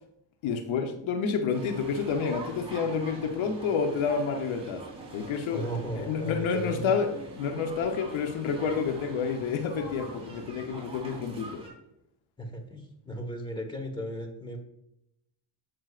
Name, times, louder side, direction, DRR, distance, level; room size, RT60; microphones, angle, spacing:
voice 1, 0.4-4.9 5.1-5.6 6.0-11.6, left 6 dB, 80° left, 5 dB, 1.1 m, -29 dB
sound 1, 1.5-11.7, right 2 dB, 10° right, 3.5 m, -43 dB
voice 2, 5.5-6.9 12.4-14.6, equal, 10° left, 4 dB, 1.4 m, -36 dB
15.5 x 6.2 x 2.5 m, 0.83 s
cardioid pair, 135°, 47 cm